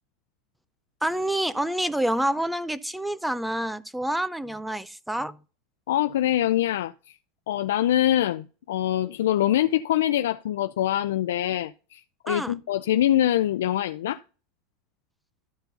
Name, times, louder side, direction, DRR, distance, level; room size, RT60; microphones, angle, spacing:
voice 1, 1.0-5.4 12.3-12.5, right 1 dB, 5° right, 0.5 m, -27 dB
voice 2, 5.9-6.9 7.5-14.2, left 12 dB, 85° left, 0.4 m, -24 dB
13.0 x 4.5 x 4.0 m
supercardioid pair, 115°, 0 cm